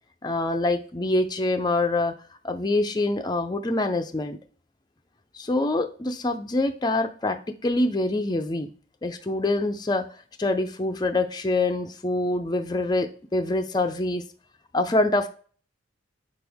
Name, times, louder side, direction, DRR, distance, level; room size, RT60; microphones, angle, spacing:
voice 1, 0.2-2.1 2.4-4.4 5.3-8.7 9.0-10.1 10.4-14.3 14.7-15.3, left 2 dB, 20° left, 6 dB, 0.5 m, -25 dB
8.6 x 6.0 x 3.5 m, 0.43 s
head